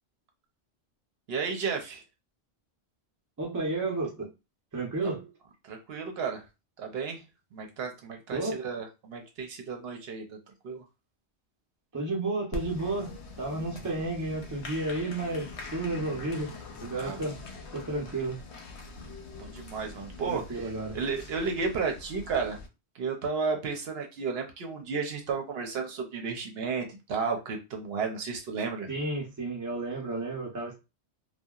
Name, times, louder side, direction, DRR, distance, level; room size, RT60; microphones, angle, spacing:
voice 1, 1.3-2.0 5.7-6.4 6.8-7.2 7.5-10.4 10.6-10.8 16.9-17.3 19.3-22.6 22.9-28.9, right 5 dB, 70° right, 3 dB, 0.8 m, -33 dB
voice 2, 3.4-4.3 4.7-5.3 8.3-8.6 11.9-16.5 16.8-17.4 17.7-18.4 20.3-21.0 28.9-30.7, right 2 dB, 20° right, 0 dB, 0.6 m, -32 dB
Applause, 12.5-22.7, left 3 dB, 80° left, 0.9 m, -43 dB
2.7 x 2.2 x 2.3 m, 0.27 s
omnidirectional pair, 1.1 m